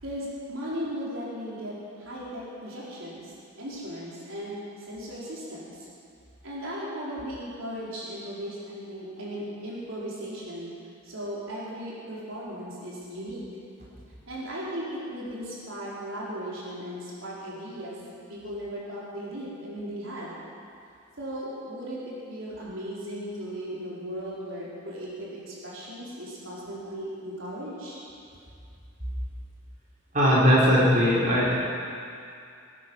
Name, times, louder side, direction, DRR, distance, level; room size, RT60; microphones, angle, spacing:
voice 1, 0.0-5.9 6.4-10.7 11.0-13.4 14.3-18.0 18.3-20.4 21.2-28.0, equal, 85° right, -7 dB, 4.1 m, -37 dB
voice 2, 30.1-31.5, equal, 40° right, -7 dB, 4.0 m, -19 dB
19.5 x 9.8 x 6.3 m, 2.4 s
head